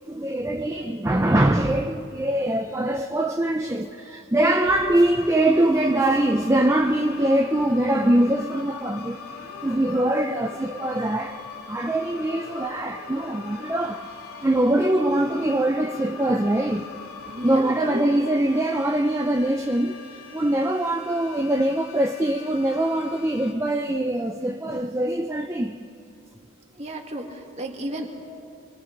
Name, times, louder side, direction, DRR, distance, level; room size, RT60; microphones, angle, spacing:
voice 1, 0.1-9.2 9.6-11.4 11.7-14.1 14.4-16.9 17.4-25.8, right 1 dB, 15° right, 4 dB, 0.5 m, -23 dB
sound 1, 4.7-23.5, left 5 dB, 80° left, 2.5 m, -41 dB
voice 2, 17.3-18.2 26.7-28.1, right 1 dB, 30° right, 2 dB, 2.1 m, -33 dB
25.5 x 22.5 x 5.3 m, 2.7 s
head